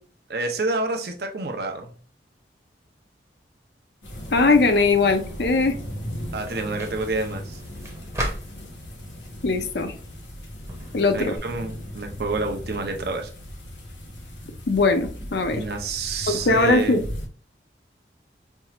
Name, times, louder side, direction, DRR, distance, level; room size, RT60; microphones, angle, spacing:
voice 1, 0.3-1.9 6.3-7.6 11.1-13.3 15.5-17.1, right 3 dB, 60° right, 4 dB, 0.7 m, -28 dB
sound 1, 4.0-17.3, equal, 90° left, 1.3 m, -37 dB
voice 2, 4.3-5.8 9.4-9.9 10.9-11.4 14.7-15.6 16.5-17.0, left 3 dB, 65° left, 7 dB, 0.5 m, -20 dB
sound 2, 5.3-11.4, equal, 15° right, 0.8 m, -38 dB
4.5 x 2.4 x 3.0 m, 0.42 s
head